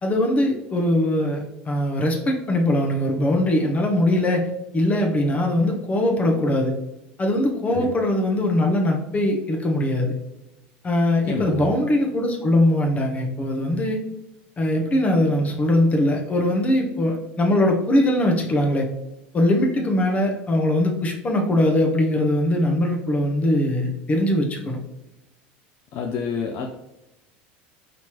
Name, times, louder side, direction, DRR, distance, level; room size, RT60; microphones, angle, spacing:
voice 1, 0.0-4.5 4.7-6.7 7.2-10.1 10.8-14.0 14.6-18.9 19.3-24.8, left 1 dB, 30° left, 1 dB, 0.9 m, -21 dB
voice 2, 11.3-11.7 25.9-26.7, left 5 dB, 55° left, 2 dB, 0.5 m, -28 dB
4.3 x 3.2 x 3.0 m, 0.89 s
supercardioid pair, 105°, 5 cm